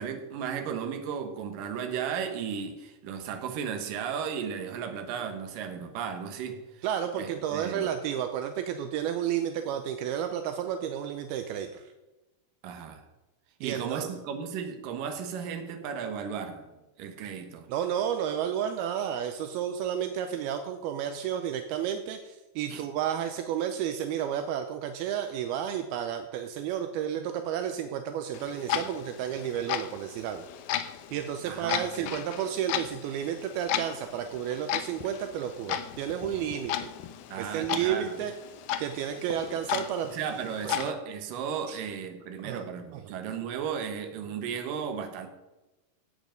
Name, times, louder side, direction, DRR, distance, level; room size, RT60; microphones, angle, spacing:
voice 1, 0.0-6.8 7.2-7.9 12.6-13.0 13.6-16.7 17.0-17.7 22.7-22.8 31.5-32.1 37.3-38.1 40.1-45.3, right 7 dB, 65° right, 2.7 m, -35 dB
voice 2, 6.8-11.8 13.6-14.1 17.7-30.5 31.1-36.9 37.4-38.3 38.8-40.1 40.6-40.8 41.7-41.8 42.4-42.7 42.9-43.0, right 9 dB, 80° right, 2.6 m, -31 dB
Clock, 28.3-40.9, left 11 dB, 80° left, 1.8 m, -35 dB
14.5 x 8.3 x 5.2 m
omnidirectional pair, 4.5 m